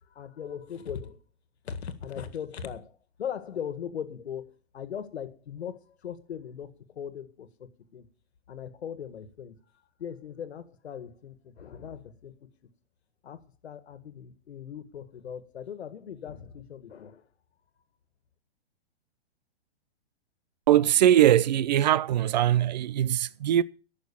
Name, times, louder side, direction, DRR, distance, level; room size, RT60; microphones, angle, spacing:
voice 1, 0.0-1.2 1.6-8.1 8.5-12.5 13.2-17.3, left 8 dB, 85° left, 1.8 m, -39 dB
voice 2, 20.7-23.6, right 11 dB, 45° right, 0.5 m, -21 dB
14.5 x 6.5 x 7.0 m
hypercardioid pair, 165°, 32 cm